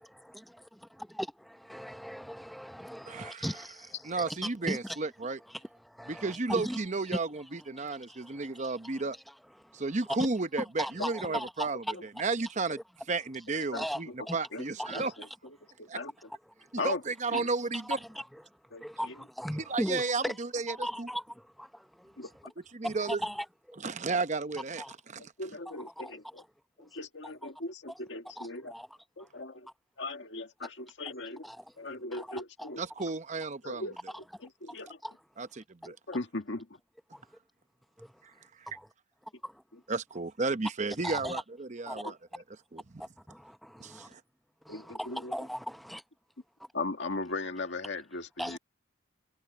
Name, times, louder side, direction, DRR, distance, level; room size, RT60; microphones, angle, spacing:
voice 1, 0.2-5.0 5.8-6.8 7.8-8.9 9.6-9.8 10.8-11.7 13.7-14.4 14.8-15.1 17.3-17.8 18.1-18.2 18.8-20.3 20.7-22.2 22.8-23.8 24.8-24.9 26.0-26.1 28.4-28.9 29.2-29.3 31.4-31.7 32.1-32.7 34.7-34.8 35.0-35.1 38.7-38.9 39.4-39.6 41.0-41.4 41.9-42.1 43.3-44.1 44.7-46.0 48.4-48.6, equal, ahead, 0.8 m, -38 dB
voice 2, 3.1-3.5 4.0-5.4 6.1-9.2 9.7-12.8 13.1-15.1 15.9-16.0 16.8-18.0 19.7-21.1 22.7-23.2 23.8-25.3 32.8-33.9 35.4-36.0 38.6-38.7 39.9-42.2 42.7-43.1 43.8-44.2, right 3 dB, 40° right, 0.8 m, -33 dB
voice 3, 11.0-11.3 11.9-12.0 13.7-14.1 14.5-15.3 15.9-16.1 16.8-17.0 17.3-17.4 18.7-19.1 20.2-20.3 22.2-22.3 25.2-26.4 26.8-28.7 29.2-29.7 30.0-31.4 31.8-32.8 33.6-34.2 34.6-35.0 36.1-36.7 44.7-45.3 46.7-48.6, left 2 dB, 65° left, 1.9 m, -38 dB
head